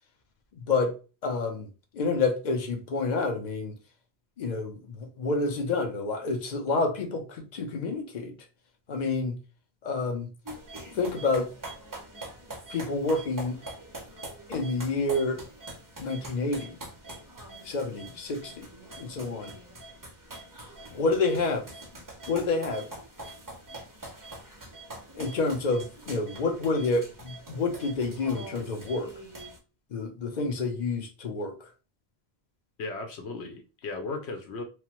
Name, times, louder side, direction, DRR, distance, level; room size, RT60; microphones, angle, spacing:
voice 1, 0.5-0.9 1.2-1.7 1.9-3.7 4.4-8.3 8.9-9.3 9.8-10.3 10.9-11.5 12.7-13.6 14.5-15.4 16.0-16.8 17.6-18.7 19.0-19.5 20.9-21.6 22.3-22.9 25.1-29.1 29.9-31.5, left 3 dB, 50° left, 0.7 m, -28 dB
sound 1, 10.5-29.6, right 2 dB, 30° right, 0.4 m, -44 dB
voice 2, 32.8-34.6, left 3 dB, 85° left, 0.9 m, -36 dB
3.1 x 2.0 x 2.9 m
omnidirectional pair, 1.1 m